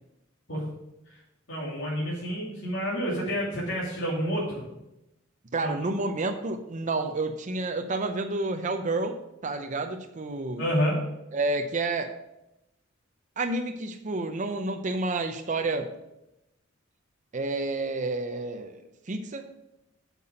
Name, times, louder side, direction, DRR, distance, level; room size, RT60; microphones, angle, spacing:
voice 1, 1.5-4.6 5.6-5.9 10.6-11.0, equal, 70° left, -8 dB, 2.8 m, -29 dB
voice 2, 5.5-10.6 11.3-12.1 13.4-15.9 17.3-19.5, right 2 dB, 40° right, 5 dB, 0.6 m, -30 dB
8.1 x 5.8 x 5.0 m, 0.89 s
head